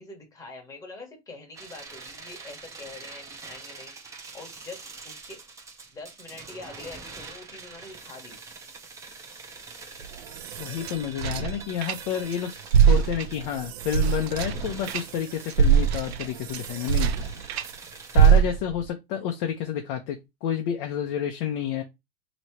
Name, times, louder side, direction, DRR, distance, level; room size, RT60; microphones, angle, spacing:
voice 1, 0.0-3.9 4.3-5.4 5.9-8.4, left 3 dB, 10° left, 1.2 m, -44 dB
sound 1, 1.5-18.3, right 4 dB, 10° right, 0.7 m, -44 dB
sound 2, 10.0-12.4 12.7-17.7 18.1-18.8, right 8 dB, 90° right, 0.6 m, -23 dB
voice 2, 10.6-12.5 12.8-17.1 18.1-21.8, left 9 dB, 45° left, 0.8 m, -30 dB
3.1 x 2.8 x 4.5 m
supercardioid pair, 145°, 31 cm